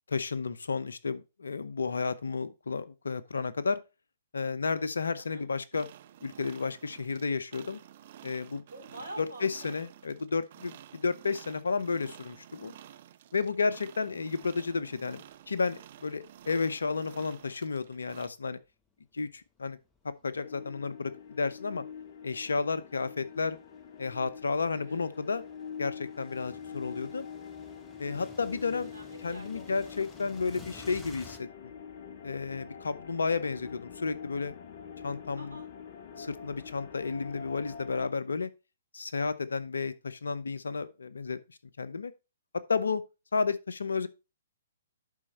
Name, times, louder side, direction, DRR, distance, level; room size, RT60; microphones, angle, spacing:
voice 1, 0.1-3.8 4.3-5.9 6.2-7.8 8.2-8.6 9.4-12.7 13.3-15.2 15.5-18.6 19.1-19.8 20.0-21.8 22.2-23.6 24.0-25.4 25.8-27.3 28.0-28.9 29.2-31.7 32.2-34.5 35.0-35.6 36.2-38.5 38.9-42.1 42.5-43.0 43.3-44.1, left 4 dB, 70° left, 0.7 m, -32 dB
sound 1, 5.7-18.3, right 11 dB, 45° right, 0.5 m, -52 dB
voice 2, 8.7-9.8 24.9-25.1 28.7-29.9 35.4-35.6, right 1 dB, 80° right, 3.1 m, -47 dB
sound 2, 15.3-15.4 16.4-18.0 18.7-31.4, left 2 dB, 15° left, 1.2 m, -56 dB
sound 3, 20.4-38.1, left 7 dB, 40° left, 1.0 m, -45 dB
11.0 x 4.4 x 4.1 m
figure-of-eight pair, 120°, 0 cm